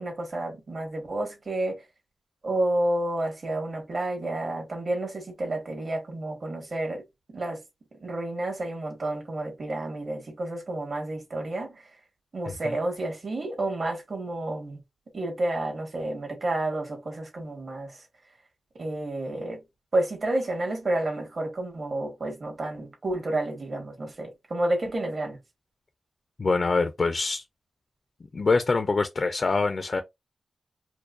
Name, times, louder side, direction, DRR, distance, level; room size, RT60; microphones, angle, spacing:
voice 1, 0.0-1.8 2.4-7.0 7.3-7.6 8.0-11.8 12.3-14.8 15.1-18.0 18.8-19.6 19.9-25.4, right 1 dB, 55° right, 1.7 m, -30 dB
voice 2, 12.5-12.8 26.4-27.4 28.3-30.0, left 3 dB, 55° left, 0.5 m, -25 dB
4.6 x 2.2 x 2.6 m
wide cardioid pair, 85°, 0 cm